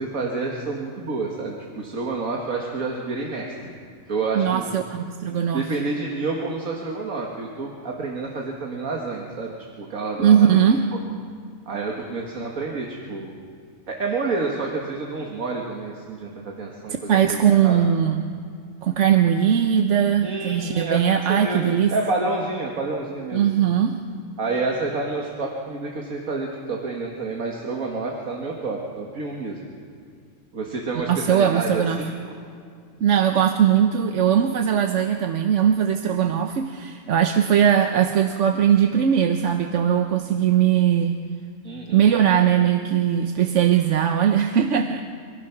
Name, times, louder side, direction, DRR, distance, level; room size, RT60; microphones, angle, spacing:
voice 1, 0.0-3.7 4.1-4.7 5.5-10.6 11.7-13.3 13.9-17.8 20.2-21.0 21.3-23.4 24.4-29.7 30.5-32.3 41.6-42.0, right 3 dB, 80° right, -1 dB, 2.2 m, -29 dB
voice 2, 4.4-5.7 10.2-10.8 17.1-18.2 18.8-21.9 23.3-24.0 31.1-32.1 33.0-41.2 41.9-45.0, right 9 dB, 65° right, 6 dB, 1.1 m, -20 dB
30.0 x 15.5 x 5.9 m, 2.3 s
omnidirectional pair, 1.4 m